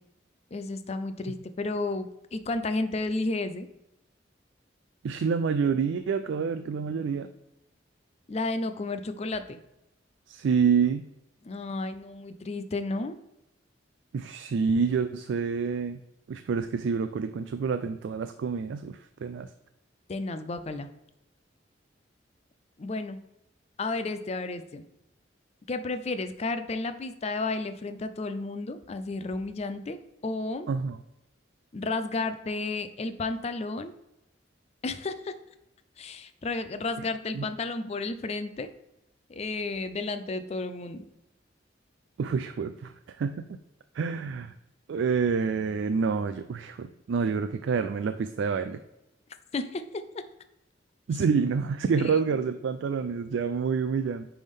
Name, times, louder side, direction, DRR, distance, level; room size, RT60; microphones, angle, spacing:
voice 1, 0.5-3.7 8.3-9.6 11.4-13.1 20.1-20.9 22.8-23.2 23.8-24.8 25.7-30.0 30.2-30.7 31.7-33.9 34.8-35.4 36.0-38.7 39.3-41.1 49.5-50.2 52.0-52.1, left 3 dB, 35° left, 10 dB, 0.4 m, -32 dB
voice 2, 5.0-7.3 10.3-11.0 14.1-16.0 16.3-19.5 30.7-31.0 37.3-37.5 42.2-43.6 43.9-44.5 44.9-48.8 51.1-54.3, right 5 dB, 75° right, 9 dB, 0.3 m, -28 dB
9.3 x 3.4 x 3.6 m, 0.89 s
head